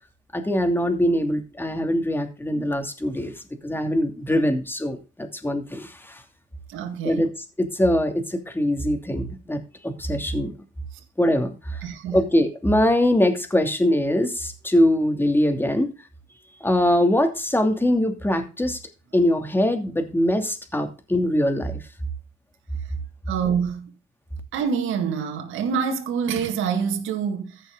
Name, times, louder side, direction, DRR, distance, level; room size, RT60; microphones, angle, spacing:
voice 1, 0.3-3.3 3.6-6.2 7.0-7.3 7.6-10.5 11.2-11.8 12.1-15.9 16.6-18.8 19.1-21.8, left 1 dB, 10° left, 2.7 m, -22 dB
voice 2, 6.7-7.3 11.8-12.2 23.3-23.9 24.5-27.6, right 6 dB, 90° right, 2.1 m, -26 dB
14.5 x 6.5 x 3.9 m
cardioid pair, 90°, 20 cm